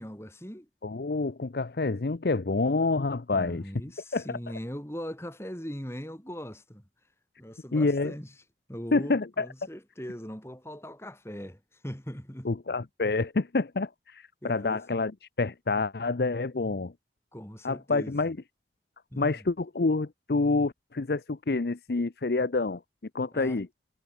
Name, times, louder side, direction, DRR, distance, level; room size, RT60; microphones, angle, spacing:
voice 1, 0.0-0.7 3.3-6.8 7.4-8.3 8.7-12.5 14.4-14.8 17.3-18.1 19.1-19.3 23.3-23.6, equal, 15° left, 4.1 m, -40 dB
voice 2, 0.8-3.6 4.1-4.4 7.7-8.1 8.9-9.5 12.4-16.9 17.6-18.4 19.2-22.8 23.1-23.7, left 3 dB, 65° left, 0.7 m, -28 dB
head